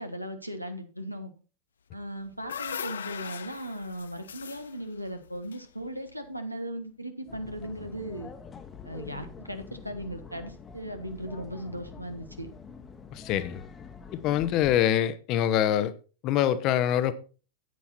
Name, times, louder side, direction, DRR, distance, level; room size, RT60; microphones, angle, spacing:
voice 1, 0.0-1.3 1.9-8.3 8.8-12.5, equal, 90° right, 1.3 m, -37 dB
sound 1, 2.0-6.3, left 7 dB, 70° left, 0.6 m, -40 dB
sound 2, 7.3-14.7, left 5 dB, 20° left, 1.1 m, -46 dB
voice 2, 13.1-13.6 14.1-15.9 16.2-17.1, left 11 dB, 40° left, 0.9 m, -25 dB
9.4 x 8.5 x 4.3 m
figure-of-eight pair, 90°, 0 cm